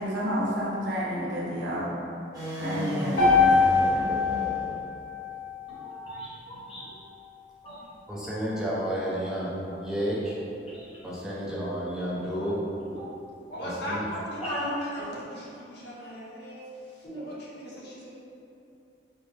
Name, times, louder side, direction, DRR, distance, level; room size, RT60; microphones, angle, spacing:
voice 1, 0.0-1.9 2.6-4.1, equal, 85° right, -6 dB, 0.9 m, -30 dB
sound 1, 2.3-5.0, equal, 20° right, 1.0 m, -34 dB
sound 2, 3.2-7.3, left 4 dB, 85° left, 1.1 m, -25 dB
voice 2, 5.7-6.9 7.6-7.8 13.0-13.1 14.4-14.7 17.0-17.3, equal, 30° left, -9 dB, 1.1 m, -37 dB
voice 3, 8.1-10.4 11.0-12.6 13.6-14.1, equal, 5° right, -8 dB, 0.6 m, -31 dB
voice 4, 13.5-18.1, equal, 65° left, -6 dB, 0.8 m, -39 dB
4.3 x 2.1 x 3.2 m, 2.8 s
head